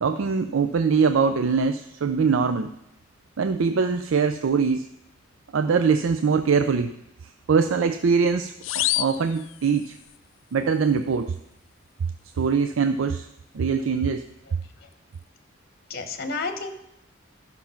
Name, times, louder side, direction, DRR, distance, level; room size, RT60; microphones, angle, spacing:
voice 1, 0.0-2.7 3.4-4.9 5.5-6.9 7.5-10.0 10.5-11.3 12.4-13.3 13.5-14.2, right 5 dB, 75° right, 9 dB, 0.4 m, -22 dB
sound 1, 8.6-10.2, left 16 dB, 70° left, 0.3 m, -28 dB
voice 2, 14.5-14.9 15.9-16.7, left 3 dB, 50° left, 7 dB, 1.2 m, -32 dB
13.0 x 5.9 x 5.7 m, 0.84 s
head